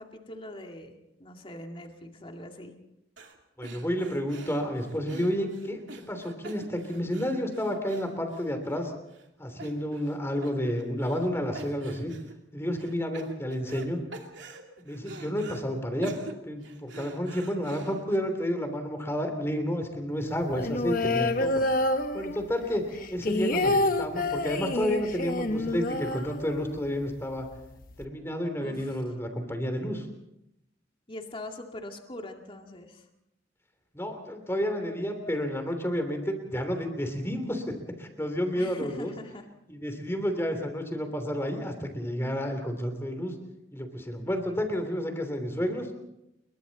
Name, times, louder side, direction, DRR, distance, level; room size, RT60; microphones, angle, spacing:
voice 1, 0.0-2.7 28.6-29.0 31.1-33.1 38.6-39.4, left 1 dB, 30° left, 3 dB, 2.3 m, -42 dB
sound 1, 3.2-3.4 3.6-8.8 9.1-9.2 9.6-10.2 10.4-11.3 11.5-12.3 12.8-13.9 14.1-15.6 16.0-18.2, right 3 dB, 85° right, 2.6 m, -45 dB
voice 2, 3.6-5.8 6.1-8.9 9.4-12.1 12.5-14.0 14.8-16.1 16.4-21.7 22.1-27.5 28.0-30.1 33.9-37.7 38.0-39.1 39.7-43.3 43.7-45.9, equal, 15° left, 6 dB, 3.1 m, -30 dB
sound 2, 20.5-22.6 22.9-26.9 27.2-27.3 27.5-28.0, left 2 dB, 50° left, 1.2 m, -28 dB
28.5 x 22.5 x 4.1 m, 0.86 s
head